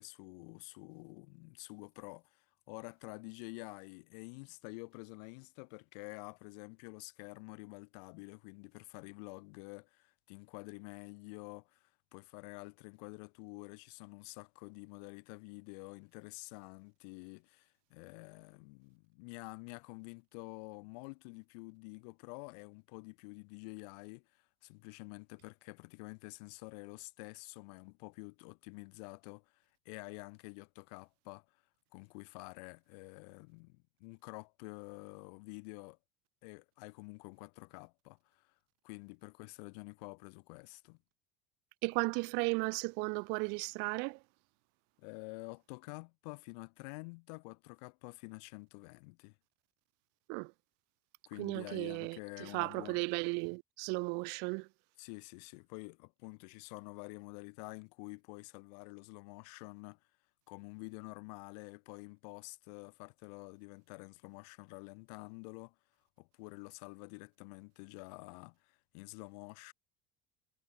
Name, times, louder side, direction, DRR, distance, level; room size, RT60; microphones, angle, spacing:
voice 1, 0.0-31.6 31.9-36.0 36.4-38.5 38.8-41.0 45.0-49.4 51.3-53.0 55.0-60.0 60.5-65.8 66.2-69.7, left 32 dB, 70° left, 3.4 m, -49 dB
voice 2, 41.8-44.2 50.3-50.5 51.4-52.2 52.5-54.7, right 35 dB, 55° right, 0.5 m, -35 dB
cardioid pair, 170°, 21 cm